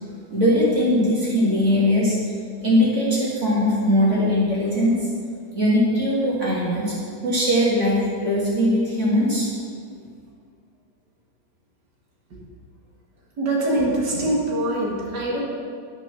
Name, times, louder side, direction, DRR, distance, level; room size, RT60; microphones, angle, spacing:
voice 1, 0.3-2.2 2.6-5.1 5.5-6.9 7.2-9.5, left 1 dB, 40° right, -6 dB, 3.0 m, -20 dB
voice 2, 13.4-15.4, right 1 dB, 70° right, -3 dB, 2.6 m, -23 dB
10.0 x 6.1 x 6.1 m, 2.1 s
omnidirectional pair, 1.9 m